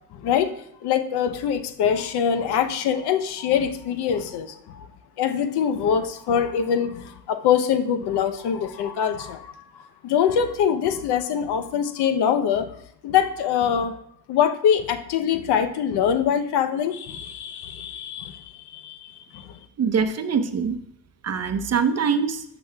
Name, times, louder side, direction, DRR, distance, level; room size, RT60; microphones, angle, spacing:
voice 1, 0.1-0.5 0.8-4.9 5.2-12.8 13.0-14.0 14.3-19.6, left 8 dB, 65° left, 9 dB, 0.8 m, -24 dB
voice 2, 19.8-20.8 21.2-22.4, right 6 dB, 35° right, 8 dB, 0.8 m, -23 dB
11.5 x 6.2 x 2.3 m, 0.70 s
supercardioid pair, 85°, 44 cm